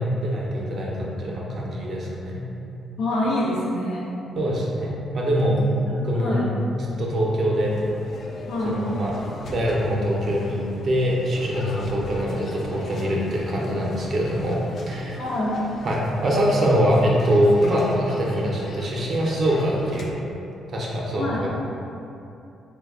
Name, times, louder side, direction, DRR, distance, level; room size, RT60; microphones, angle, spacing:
voice 1, 0.0-2.4 4.4-5.6 6.0-6.4 6.7-7.8 8.7-9.1 9.5-14.6 14.9-15.2 15.8-20.1 20.7-21.5, equal, 50° right, -3 dB, 0.6 m, -23 dB
voice 2, 3.0-4.1 5.4-5.6 5.9-6.4 8.5-8.8 15.2-15.5 21.1-21.4, left 1 dB, 80° left, -6 dB, 0.8 m, -26 dB
sound 1, 7.5-20.1, left 2 dB, 50° left, 0.3 m, -39 dB
3.4 x 2.2 x 3.5 m, 2.7 s
cardioid pair, 90°, 0 cm